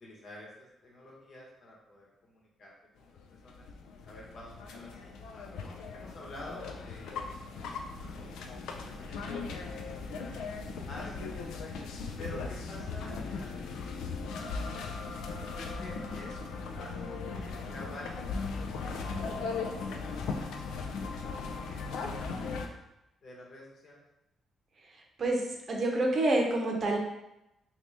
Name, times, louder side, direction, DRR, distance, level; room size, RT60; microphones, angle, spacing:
voice 1, 0.0-3.7 4.0-7.4 8.0-9.7 10.0-10.4 10.8-11.5 12.2-14.8 15.4-19.5 19.8-20.5 20.9-21.4 21.6-22.7 23.2-24.0, left 1 dB, 65° left, -3 dB, 1.1 m, -50 dB
sound 1, 3.0-22.7, left 4 dB, 80° left, 0.3 m, -38 dB
voice 2, 25.2-27.0, right 2 dB, 55° right, 0 dB, 0.7 m, -27 dB
2.9 x 2.8 x 3.3 m, 0.90 s
supercardioid pair, 55°, 0 cm